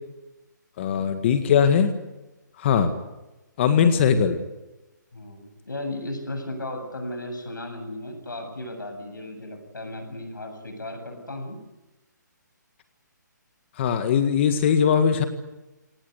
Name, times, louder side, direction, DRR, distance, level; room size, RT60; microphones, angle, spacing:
voice 1, 0.8-1.9 2.6-2.9 3.6-4.4 13.8-15.2, left 7 dB, 35° left, 8 dB, 1.8 m, -20 dB
voice 2, 5.1-11.6, left 1 dB, 80° left, 5 dB, 7.9 m, -35 dB
25.0 x 19.0 x 8.3 m, 1.0 s
figure-of-eight pair, 145°, 10 cm